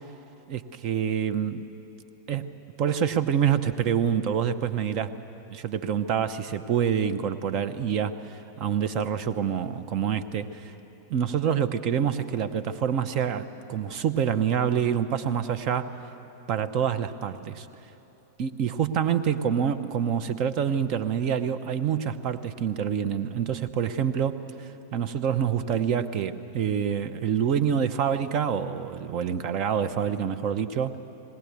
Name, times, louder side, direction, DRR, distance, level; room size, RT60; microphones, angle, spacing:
voice 1, 0.5-1.7 2.3-2.5 2.8-5.2 5.5-10.7 11.1-16.0 16.5-17.7 18.4-31.0, right 8 dB, 40° right, 12 dB, 0.8 m, -27 dB
20.5 x 18.0 x 8.3 m, 3.0 s
figure-of-eight pair, 90°, 0 cm